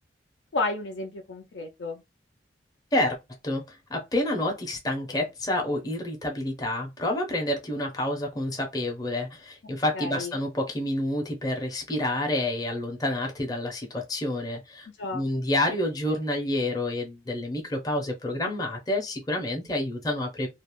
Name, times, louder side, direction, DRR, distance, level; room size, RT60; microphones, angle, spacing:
voice 1, 0.5-2.0 9.9-10.3 15.0-15.2, left 3 dB, 80° left, 0.4 m, -31 dB
voice 2, 3.4-14.9 15.1-20.5, left 1 dB, 20° left, 0.5 m, -28 dB
2.4 x 2.0 x 2.9 m
head